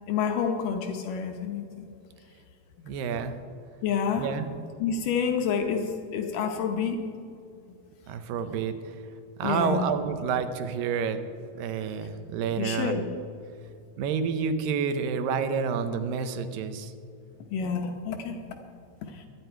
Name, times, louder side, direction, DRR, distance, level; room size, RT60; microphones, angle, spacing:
voice 1, 0.0-1.9 3.8-4.3 4.8-7.0 9.4-9.9 12.6-13.0 17.5-18.4 19.1-19.2, left 6 dB, 75° left, 4 dB, 2.5 m, -28 dB
voice 2, 2.9-3.3 4.2-4.5 8.1-9.0 9.4-11.2 11.6-13.1 14.0-16.9, right 6 dB, 90° right, 9 dB, 2.6 m, -29 dB
23.0 x 9.9 x 4.6 m, 2.5 s
omnidirectional pair, 3.9 m